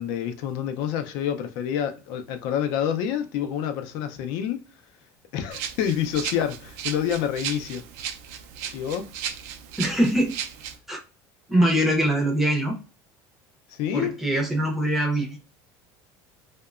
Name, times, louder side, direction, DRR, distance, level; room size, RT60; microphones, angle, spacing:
voice 1, 0.0-4.6 5.3-7.8 8.7-9.1 13.7-14.2, left 9 dB, 60° left, 0.4 m, -28 dB
Rattle (instrument), 5.5-10.8, right 9 dB, 90° right, 0.4 m, -35 dB
voice 2, 9.8-10.4 10.9-11.0 11.5-12.8 13.9-15.4, right 1 dB, 5° right, 0.5 m, -23 dB
2.8 x 2.1 x 2.3 m
cardioid pair, 170°, 9 cm